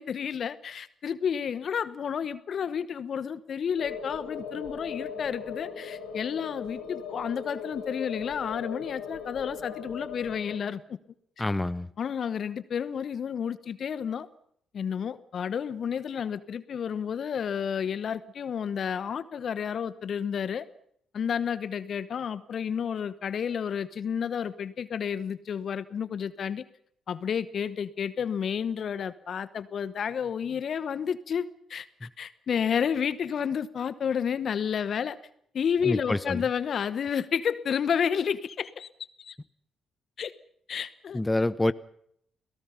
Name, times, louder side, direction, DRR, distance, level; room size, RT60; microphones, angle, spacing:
voice 1, 0.0-11.0 11.4-11.5 12.0-14.3 14.7-20.6 21.1-26.6 27.1-35.2 35.5-38.9 39.2-39.4 40.2-40.3 40.7-41.2, left 7 dB, 55° left, 1.0 m, -31 dB
sound 1, 3.8-10.6, left 6 dB, 75° left, 4.5 m, -39 dB
voice 2, 11.4-11.9 32.0-32.1 35.8-36.4 41.1-41.7, left 2 dB, 15° left, 0.9 m, -27 dB
29.5 x 18.0 x 5.8 m
hypercardioid pair, 45°, 0 cm